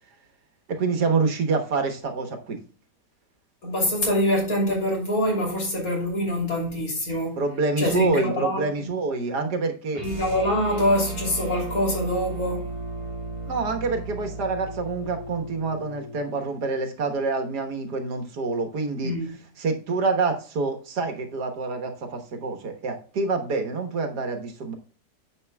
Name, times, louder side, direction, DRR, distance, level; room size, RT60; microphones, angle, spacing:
voice 1, 0.7-2.6 7.4-10.0 13.5-19.1 19.6-24.7, right 4 dB, 65° right, 1.8 m, -27 dB
voice 2, 3.6-7.4 7.8-8.6 10.0-12.7 19.0-19.3, left 1 dB, 50° left, 3.5 m, -24 dB
sound 1, 9.9-16.3, right 2 dB, 20° right, 1.4 m, -35 dB
9.8 x 7.4 x 2.2 m
omnidirectional pair, 1.9 m